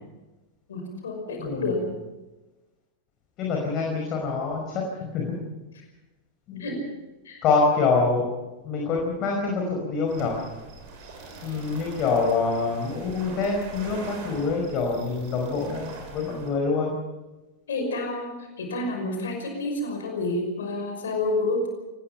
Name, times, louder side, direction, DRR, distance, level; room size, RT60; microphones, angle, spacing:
voice 1, 0.7-1.8 6.6-6.8 7.2-7.4 17.7-21.7, left 2 dB, 65° left, 3 dB, 5.7 m, -29 dB
voice 2, 1.4-1.8 3.4-5.4 6.5-6.7 7.4-8.3 8.6-10.4 11.4-16.9, left 4 dB, 35° left, 0 dB, 5.2 m, -26 dB
sound 1, 10.1-16.5, right 3 dB, 50° right, 7.0 m, -43 dB
25.5 x 20.0 x 5.8 m, 1.1 s
figure-of-eight pair, 90°, 0 cm